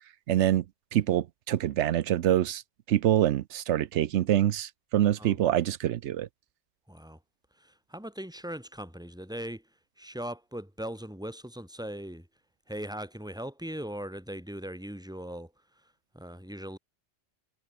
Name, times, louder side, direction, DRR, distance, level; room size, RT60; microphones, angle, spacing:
voice 1, 0.3-0.6 0.9-2.6 2.9-6.3, right 12 dB, 85° right, 1.0 m, -25 dB
voice 2, 6.9-7.2 7.6-9.6 10.0-12.3 12.7-15.5 16.1-16.8, equal, 5° right, 2.8 m, -39 dB
omnidirectional pair, 1.2 m